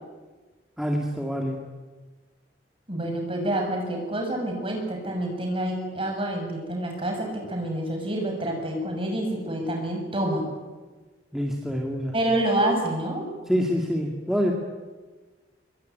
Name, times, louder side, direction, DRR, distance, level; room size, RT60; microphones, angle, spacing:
voice 1, 0.8-1.6 11.3-12.2 13.5-14.5, equal, ahead, 0 dB, 2.4 m, -26 dB
voice 2, 2.9-10.5 12.1-13.2, right 1 dB, 30° right, 2 dB, 6.8 m, -27 dB
23.5 x 22.0 x 9.5 m, 1.3 s
head